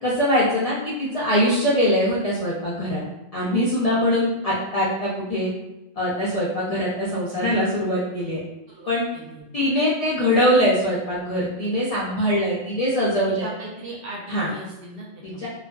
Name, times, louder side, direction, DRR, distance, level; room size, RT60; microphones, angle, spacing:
voice 1, 0.0-3.0 3.3-5.5 6.0-8.4 8.9-9.0 9.5-13.5 14.3-14.5 15.2-15.5, equal, 55° left, -7 dB, 0.4 m, -22 dB
voice 2, 8.7-9.5 12.2-12.4 13.3-15.5, right 1 dB, 60° right, -4 dB, 0.7 m, -38 dB
2.4 x 2.3 x 2.2 m, 0.97 s
omnidirectional pair, 1.2 m